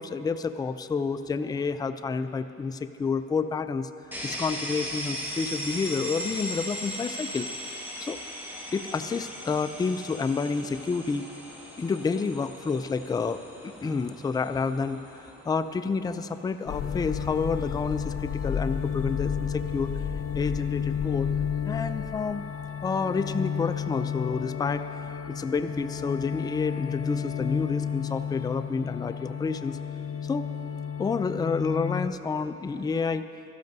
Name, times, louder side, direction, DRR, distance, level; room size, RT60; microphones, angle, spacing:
voice 1, 0.0-3.9 4.2-7.5 8.0-8.2 8.7-11.3 11.8-15.0 15.5-19.9 20.3-21.3 21.6-22.4 22.8-25.0 25.3-29.8 30.2-30.5 31.0-33.3, left 4 dB, 15° left, 10 dB, 0.3 m, -29 dB
sound 1, 4.1-17.8, equal, 5° right, 1.8 m, -39 dB
sound 2, 16.7-32.1, left 8 dB, 50° left, 0.6 m, -31 dB
16.0 x 13.0 x 2.7 m, 3.0 s
cardioid pair, 90°, 30 cm